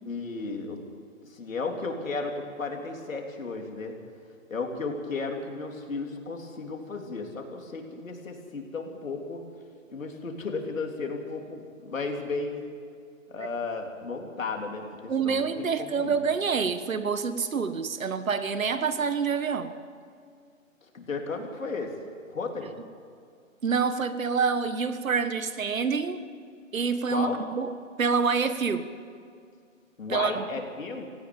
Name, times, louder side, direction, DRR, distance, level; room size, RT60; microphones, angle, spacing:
voice 1, 0.1-0.8 1.3-4.0 4.5-9.4 9.9-12.6 13.3-16.2 20.9-21.9 22.3-22.7 27.1-27.4 30.0-31.1, left 4 dB, 75° left, 2 dB, 3.7 m, -34 dB
voice 2, 15.1-19.7 23.6-26.2 26.7-28.9 30.1-30.5, right 5 dB, 75° right, 11 dB, 1.6 m, -27 dB
17.5 x 16.5 x 9.1 m, 2.3 s
hypercardioid pair, 180°, 40 cm